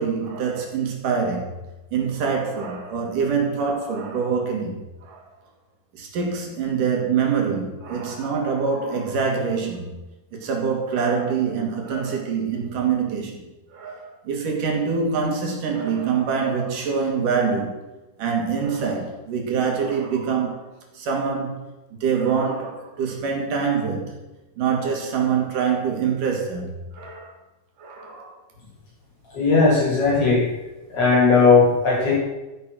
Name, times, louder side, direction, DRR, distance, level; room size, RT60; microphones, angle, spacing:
voice 1, 0.0-1.5 1.9-5.2 5.9-10.0 10.3-17.8 18.2-20.7 20.9-21.6 21.9-24.2 24.6-27.3 27.8-28.4, right 6 dB, 75° right, 4.0 m, -25 dB
voice 2, 29.3-30.5 30.9-32.1, left 4 dB, 45° left, 7.0 m, -17 dB
13.5 x 10.0 x 6.4 m
omnidirectional pair, 3.7 m